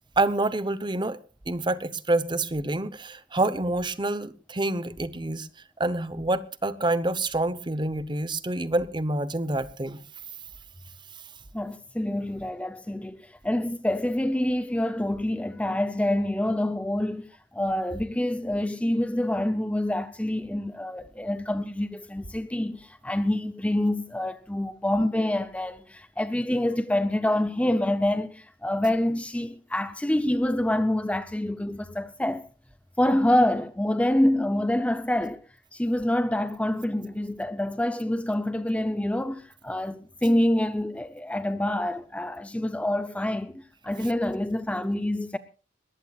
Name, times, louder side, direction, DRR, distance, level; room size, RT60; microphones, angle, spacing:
voice 1, 0.2-1.2 1.5-5.5 5.8-10.0 44.0-44.1, right 2 dB, 25° right, 0.9 m, -27 dB
voice 2, 11.5-32.5 33.0-35.4 35.7-45.4, left 1 dB, 5° left, 0.6 m, -26 dB
21.5 x 19.0 x 2.4 m
head